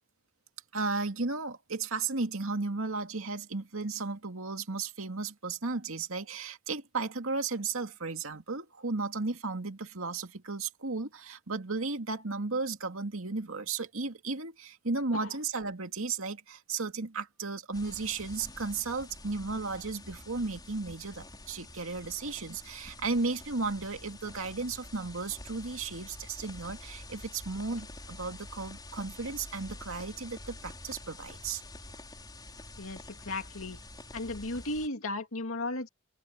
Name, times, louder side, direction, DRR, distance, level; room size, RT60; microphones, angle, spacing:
voice 1, 0.7-31.6, right 3 dB, 80° right, 2.4 m, -34 dB
sound 1, 17.7-34.9, left 2 dB, 20° left, 5.0 m, -47 dB
voice 2, 32.8-33.8 34.1-35.9, left 2 dB, 90° left, 2.4 m, -35 dB
head